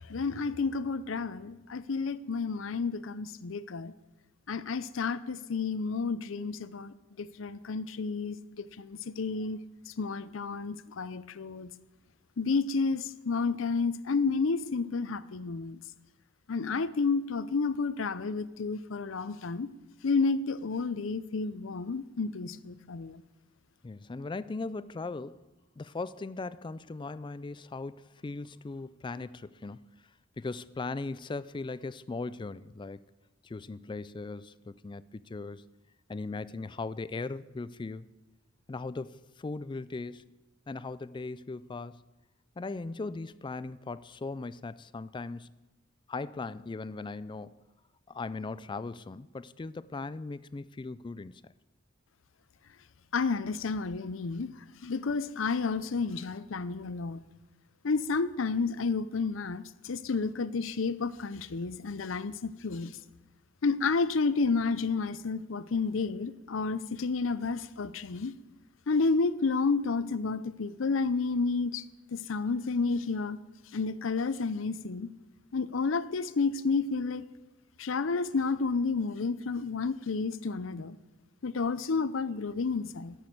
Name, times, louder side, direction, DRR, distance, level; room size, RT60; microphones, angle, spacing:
voice 1, 0.1-3.9 4.5-9.6 10.0-11.7 12.4-15.8 16.5-19.7 20.0-23.2 53.1-54.5 54.8-57.2 57.8-62.9 63.6-68.3 68.9-71.8 72.1-73.4 73.7-75.1 75.5-77.2 77.8-81.0 81.4-83.1, left 4 dB, 70° left, 0.6 m, -31 dB
voice 2, 23.8-25.4 25.8-29.9 30.4-33.0 33.4-35.6 36.1-38.1 38.7-40.2 40.7-42.0 42.6-45.5 46.1-47.6 48.1-51.5, left 3 dB, 25° left, 0.3 m, -38 dB
14.0 x 6.3 x 8.5 m
head